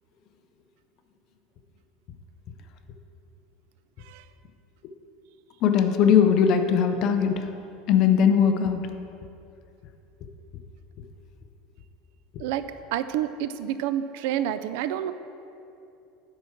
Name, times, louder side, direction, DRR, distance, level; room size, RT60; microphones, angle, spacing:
voice 1, 5.6-7.5 7.9-8.9, left 7 dB, 40° left, 6 dB, 0.6 m, -20 dB
voice 2, 12.4-15.1, right 11 dB, 65° right, 12 dB, 0.4 m, -29 dB
10.5 x 4.5 x 5.8 m, 2.7 s
cardioid pair, 165°, 0 cm